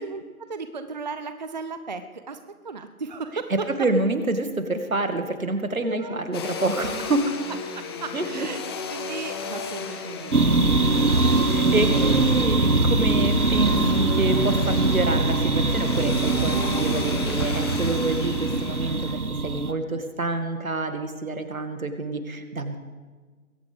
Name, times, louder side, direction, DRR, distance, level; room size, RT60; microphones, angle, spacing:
voice 1, 0.0-3.9 5.8-6.2 7.7-8.6 8.9-11.2 11.8-12.5, right 4 dB, 30° right, 9 dB, 0.6 m, -35 dB
voice 2, 3.8-7.2 8.1-8.5 11.4-22.8, right 2 dB, 70° right, 7 dB, 2.2 m, -27 dB
Domestic sounds home sounds, 6.3-19.1, left 5 dB, 15° left, 1.2 m, -34 dB
sound 1, 10.3-19.7, right 3 dB, 90° right, 1.3 m, -22 dB
21.5 x 17.5 x 3.6 m, 1.4 s
figure-of-eight pair, 140°, 43 cm